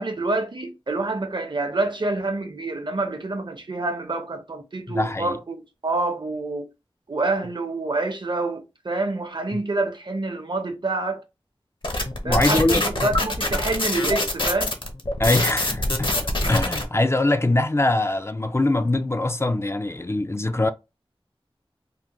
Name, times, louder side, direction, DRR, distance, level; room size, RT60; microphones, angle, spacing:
voice 1, 0.0-6.7 7.1-11.2 12.2-14.7, right 2 dB, 55° right, 0.7 m, -27 dB
voice 2, 4.9-5.4 9.5-9.6 12.2-12.8 15.2-16.1 16.5-20.7, left 2 dB, 25° left, 0.3 m, -22 dB
sound 1, 11.8-16.8, left 1 dB, 60° left, 0.7 m, -24 dB
3.6 x 2.1 x 2.9 m
wide cardioid pair, 50°, 10 cm